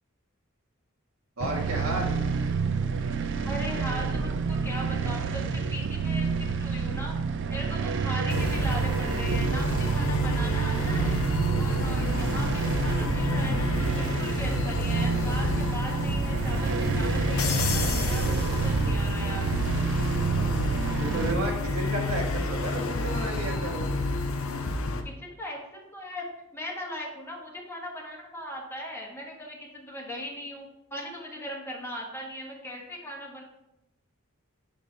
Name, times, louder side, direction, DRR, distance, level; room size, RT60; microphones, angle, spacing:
sound 1, 1.4-21.3, right 5 dB, 60° right, 0.4 m, -28 dB
voice 1, 1.4-2.1 21.0-23.9, right 1 dB, 80° right, -1 dB, 1.6 m, -32 dB
voice 2, 3.4-7.1 7.5-11.1 11.6-19.5 25.2-26.2 26.5-33.4, equal, 10° left, -3 dB, 1.3 m, -39 dB
sound 2, 8.3-25.0, left 2 dB, 75° left, 0.7 m, -29 dB
6.9 x 4.5 x 3.8 m, 0.90 s
head